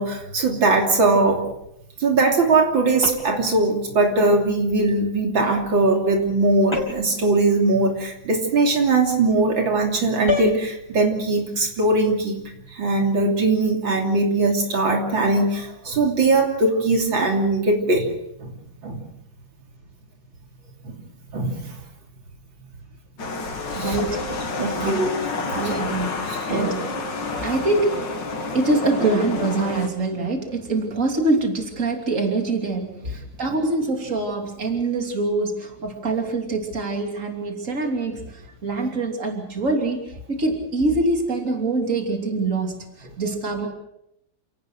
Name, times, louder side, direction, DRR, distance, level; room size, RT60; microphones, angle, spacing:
voice 1, 0.0-1.4 2.0-12.4 12.7-18.1 18.4-18.5 18.8-19.0 20.8-21.0 21.3-21.8 23.7-24.0 24.6-25.1 26.5-26.7, right 2 dB, 85° right, 2 dB, 3.7 m, -20 dB
sound 1, 3.0-3.5 6.7-7.2 10.3-10.6, left 4 dB, 15° left, 3.1 m, -26 dB
sound 2, 23.2-29.9, left 3 dB, 70° left, 2.8 m, -29 dB
voice 2, 23.8-24.3 24.8-25.0 25.5-26.8 27.2-28.3 28.5-43.7, right 2 dB, 40° right, 3 dB, 3.5 m, -24 dB
28.5 x 18.0 x 6.4 m, 0.80 s
omnidirectional pair, 2.1 m